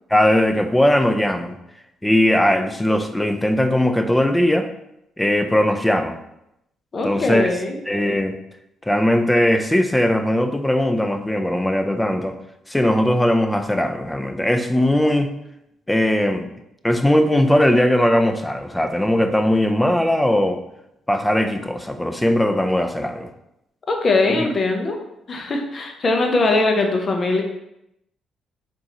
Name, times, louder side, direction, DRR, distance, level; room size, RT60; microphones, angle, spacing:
voice 1, 0.1-1.5 2.0-4.7 5.2-6.2 7.0-7.5 7.9-8.4 8.8-12.3 12.7-15.3 15.9-16.5 16.8-20.6 21.1-23.3 24.4-24.5, left 1 dB, 10° left, 6 dB, 0.4 m, -19 dB
voice 2, 6.9-7.8 23.9-25.0 25.3-27.4, left 3 dB, 40° left, 3 dB, 0.7 m, -21 dB
3.8 x 3.7 x 2.9 m, 0.83 s
cardioid pair, 90°, 0 cm